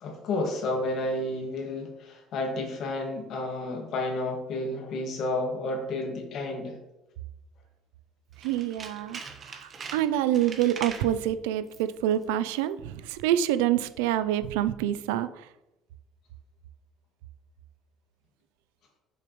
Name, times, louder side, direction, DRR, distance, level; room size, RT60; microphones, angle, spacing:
voice 1, 0.0-6.8, left 2 dB, 60° left, 2 dB, 1.9 m, -31 dB
Tools, 8.3-11.1 11.6-12.0 12.2-12.3, right 5 dB, 45° right, 1.3 m, -42 dB
voice 2, 8.4-9.2 9.9-15.3, right 12 dB, 90° right, 13 dB, 0.4 m, -26 dB
7.1 x 6.0 x 3.1 m, 0.91 s
supercardioid pair, 80°, 0 cm